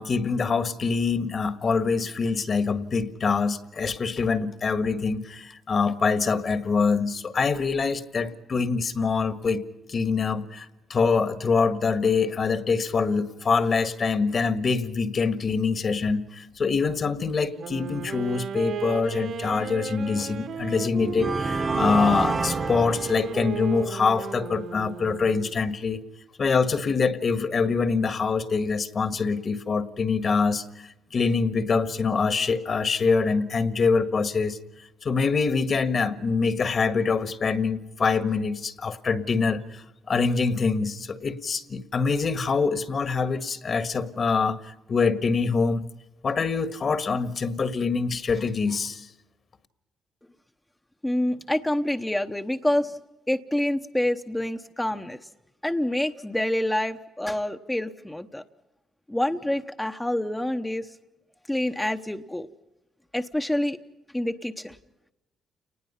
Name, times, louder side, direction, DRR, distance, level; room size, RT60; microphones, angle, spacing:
voice 1, 0.0-9.6 9.9-26.0 26.4-34.6 35.0-45.9 46.2-49.1, left 5 dB, 45° left, 10 dB, 1.6 m, -25 dB
Wind instrument woodwind instrument, 17.5-25.6, right 7 dB, 70° right, 2.4 m, -35 dB
sound 1, 20.1-20.3 21.0-23.8, right 3 dB, 30° right, 1.2 m, -28 dB
voice 2, 51.0-53.0 53.3-55.2 55.6-58.4 59.1-60.9 61.5-62.5 63.1-63.8 64.1-64.8, left 1 dB, 10° left, 6 dB, 0.9 m, -27 dB
29.5 x 20.0 x 5.7 m, 0.98 s
cardioid pair, 90°, 0 cm